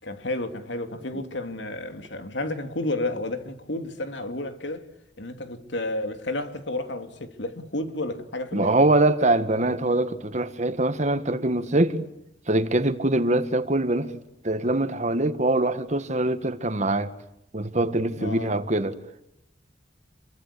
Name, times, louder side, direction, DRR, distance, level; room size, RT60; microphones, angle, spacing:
voice 1, 0.0-4.9 5.2-8.8 18.2-18.5, left 2 dB, 80° left, 2.9 m, -31 dB
voice 2, 8.5-12.1 12.5-17.1 17.5-19.0, right 2 dB, 40° right, 1.7 m, -23 dB
29.0 x 24.0 x 8.5 m
head